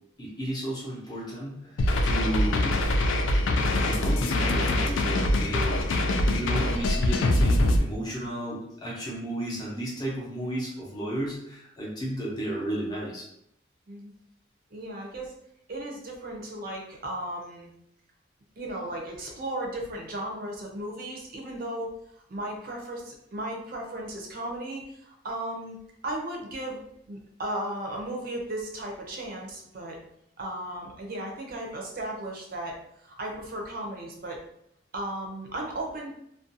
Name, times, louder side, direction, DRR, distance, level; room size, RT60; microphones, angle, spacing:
voice 1, 0.2-2.8 3.8-13.3, right 1 dB, 20° left, -5 dB, 0.6 m, -33 dB
sound 1, 1.8-7.8, left 1 dB, 80° left, 0.3 m, -24 dB
voice 2, 14.7-15.3 15.7-17.7 18.6-21.9 22.3-25.8 26.0-26.8 27.1-30.0 30.4-32.8 33.0-34.4 34.9-36.1, right 1 dB, 50° right, 0 dB, 0.5 m, -35 dB
2.4 x 2.2 x 2.6 m, 0.74 s
head